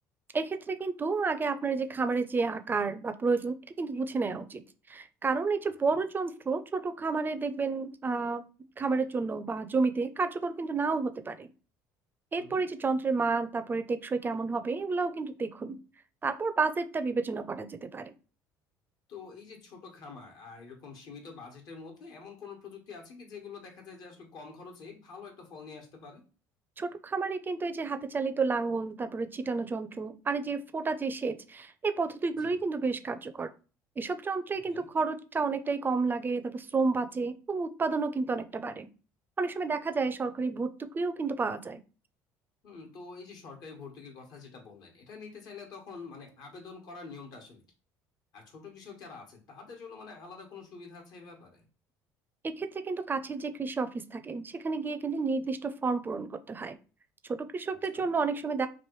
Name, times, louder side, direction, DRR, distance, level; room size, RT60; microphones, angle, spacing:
voice 1, 0.3-4.6 4.9-8.4 8.8-11.5 12.3-15.8 16.2-18.1 26.8-33.5 34.0-38.9 39.4-41.8 52.4-56.8 57.3-58.7, right 4 dB, 25° right, 10 dB, 0.4 m, -31 dB
voice 2, 19.1-26.2 32.3-32.6 34.7-34.8 42.6-47.6 48.3-51.6 57.7-58.1, left 4 dB, 65° left, 3 dB, 1.2 m, -47 dB
3.1 x 2.6 x 3.0 m, 0.36 s
supercardioid pair, 80°, 8 cm